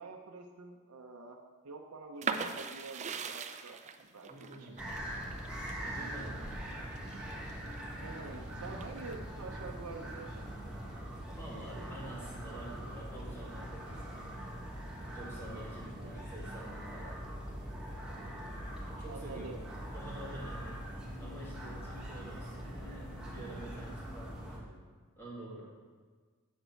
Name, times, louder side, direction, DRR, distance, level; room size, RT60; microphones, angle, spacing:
voice 1, 0.0-1.4 1.6-5.0 8.0-10.5 19.1-19.6, right 3 dB, 80° right, 0 dB, 0.7 m, -47 dB
sound 1, 2.2-7.8 8.3-9.1, right 5 dB, 30° right, 0.4 m, -40 dB
voice 2, 4.3-5.0 5.8-6.8 11.3-14.3 15.1-17.2 19.0-19.6 19.9-20.9 21.2-24.8 25.2-25.6, right 1 dB, 10° left, -6 dB, 2.5 m, -48 dB
sound 2, 4.8-24.6, equal, 5° right, 1.6 m, -42 dB
8.0 x 6.6 x 4.6 m, 1.5 s
head